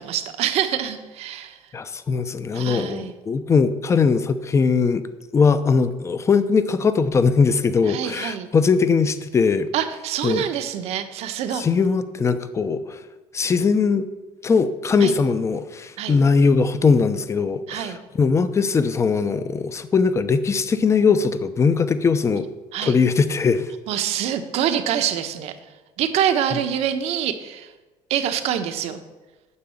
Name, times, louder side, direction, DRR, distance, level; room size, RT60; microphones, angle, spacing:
voice 1, 0.0-1.6 2.5-3.1 7.9-8.5 9.7-11.6 15.0-15.1 16.0-16.2 17.7-18.0 22.7-23.0 23.9-25.5 26.0-27.7 28.1-29.0, right 9 dB, 65° right, 8 dB, 1.2 m, -25 dB
voice 2, 1.7-5.0 5.3-9.7 10.2-10.4 11.6-13.0 13.3-14.1 14.4-22.5 22.8-23.7, left 5 dB, 25° left, 12 dB, 0.8 m, -20 dB
9.7 x 6.7 x 8.7 m, 1.2 s
cardioid pair, 130°, 12 cm